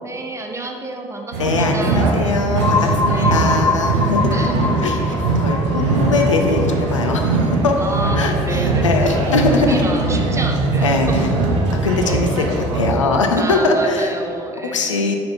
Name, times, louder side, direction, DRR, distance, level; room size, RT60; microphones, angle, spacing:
voice 1, 0.0-2.2 3.1-3.7 4.3-4.9 7.8-11.1 11.7-12.3 13.3-15.0, right 2 dB, 20° right, 2 dB, 0.8 m, -30 dB
sound 1, 1.3-12.9, right 3 dB, 75° right, 0.8 m, -20 dB
voice 2, 1.4-4.3 4.8-4.9 5.4-7.8 8.1-8.3 8.8-9.8 10.8-11.3 11.8-14.1 14.7-15.2, left 3 dB, 85° left, 3 dB, 0.5 m, -20 dB
sound 2, 2.6-8.3, left 4 dB, 20° left, 0.4 m, -25 dB
5.9 x 4.9 x 4.1 m, 2.5 s
figure-of-eight pair, 50°, 16 cm